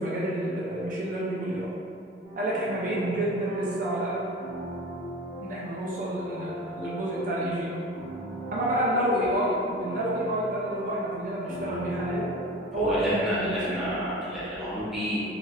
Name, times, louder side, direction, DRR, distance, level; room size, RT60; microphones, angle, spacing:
voice 1, 0.0-1.7 2.4-4.2 5.4-7.8 8.5-12.3 12.7-13.8, right 1 dB, 50° right, -7 dB, 0.4 m, -29 dB
sound 1, 2.2-13.2, right 1 dB, 55° left, 0.8 m, -39 dB
voice 2, 12.7-15.3, equal, 5° right, -11 dB, 0.7 m, -30 dB
3.2 x 2.4 x 2.6 m, 2.5 s
head